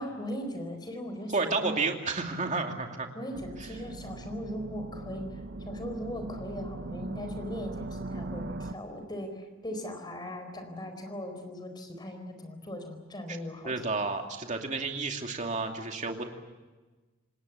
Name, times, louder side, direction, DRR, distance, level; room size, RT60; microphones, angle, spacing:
voice 1, 0.0-1.7 3.1-5.3 5.6-13.7, equal, 20° left, 6 dB, 4.4 m, -39 dB
voice 2, 1.3-3.1 13.6-16.2, right 3 dB, 40° right, 3 dB, 2.6 m, -31 dB
sound 1, 3.3-8.7, right 2 dB, 55° right, 0.9 m, -39 dB
27.0 x 19.5 x 8.3 m, 1.2 s
head